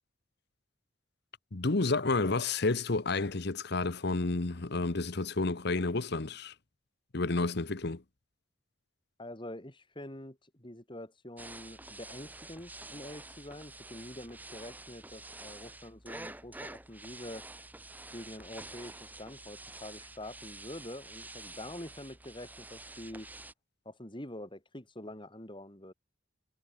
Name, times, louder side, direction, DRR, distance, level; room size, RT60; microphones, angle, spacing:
voice 1, 1.5-6.5 7.1-8.0, left 3 dB, 55° left, 1.1 m, -30 dB
voice 2, 9.2-17.5 18.1-23.3 23.9-25.9, left 1 dB, 25° left, 5.4 m, -46 dB
sound 1, 11.4-23.5, right 2 dB, 10° right, 1.5 m, -48 dB
head